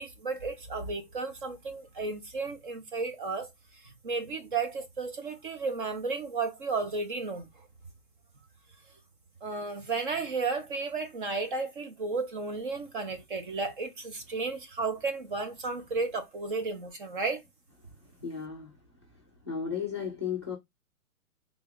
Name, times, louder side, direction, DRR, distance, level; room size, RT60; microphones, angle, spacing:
voice 1, 0.0-3.5 3.8-7.5 9.4-17.4, right 4 dB, 35° right, 0.9 m, -33 dB
voice 2, 18.2-18.8 19.5-20.6, left 7 dB, 20° left, 0.4 m, -34 dB
3.4 x 2.4 x 3.9 m
hypercardioid pair, 165°, 46 cm